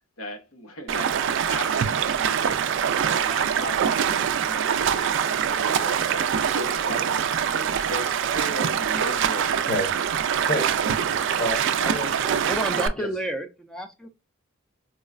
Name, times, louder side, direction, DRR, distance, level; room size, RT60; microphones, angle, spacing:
voice 1, 0.2-2.6 3.0-4.0 4.3-9.7, equal, 80° left, 0.8 m, -37 dB
Stream, 0.9-12.9, right 8 dB, 60° right, 0.3 m, -24 dB
voice 2, 10.2-10.7 11.4-12.4 13.0-13.1, left 1 dB, 45° left, 1.0 m, -30 dB
voice 3, 12.5-14.1, right 1 dB, 5° left, 0.5 m, -30 dB
4.6 x 2.1 x 2.4 m
head